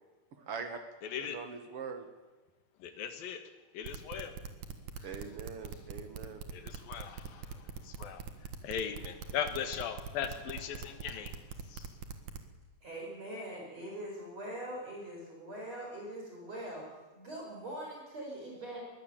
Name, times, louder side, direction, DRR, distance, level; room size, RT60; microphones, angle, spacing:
voice 1, 0.4-0.8 1.2-2.0 5.0-6.4, right 5 dB, 80° right, 6 dB, 1.2 m, -42 dB
voice 2, 1.0-1.4 2.8-3.4 3.7-4.3 6.5-8.2 8.6-11.4 11.7-11.9, left 8 dB, 60° left, 7 dB, 3.2 m, -39 dB
sound 1, 3.8-12.5, right 6 dB, 55° right, 2.4 m, -42 dB
voice 3, 12.8-16.8 17.1-18.8, right 1 dB, 35° right, -2 dB, 6.1 m, -42 dB
22.5 x 16.0 x 9.0 m, 1.2 s
omnidirectional pair, 5.1 m